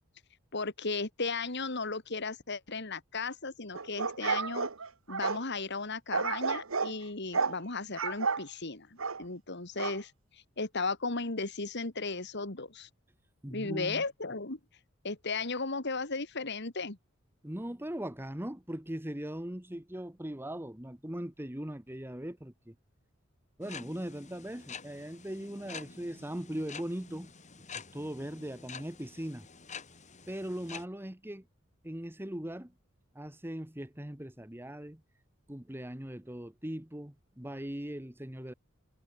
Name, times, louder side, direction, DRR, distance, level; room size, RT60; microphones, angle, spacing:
voice 1, 0.5-4.7 5.1-12.9 13.5-14.6 15.0-17.0, left 3 dB, 55° left, 2.6 m, -35 dB
sound 1, 3.7-5.4 6.1-6.9 7.3-7.6 8.0-8.4 9.0-9.2 9.8-10.0, right 5 dB, 90° right, 1.6 m, -31 dB
voice 2, 13.4-14.0 17.4-22.7 23.6-27.3 27.7-29.5 30.3-31.4 31.8-32.7 33.1-35.0 35.5-38.5, right 1 dB, 10° right, 1.5 m, -39 dB
sound 2, 23.6-30.8, left 6 dB, 35° left, 3.8 m, -48 dB
head